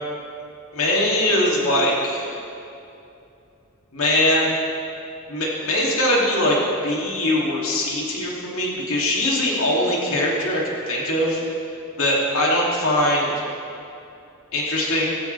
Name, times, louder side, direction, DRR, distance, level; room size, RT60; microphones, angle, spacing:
voice 1, 0.7-2.3 3.9-4.5 5.3-6.6 6.8-11.4 12.0-13.4 14.5-15.1, left 1 dB, 75° left, -3 dB, 2.9 m, -21 dB
18.0 x 15.0 x 3.5 m, 2.6 s
head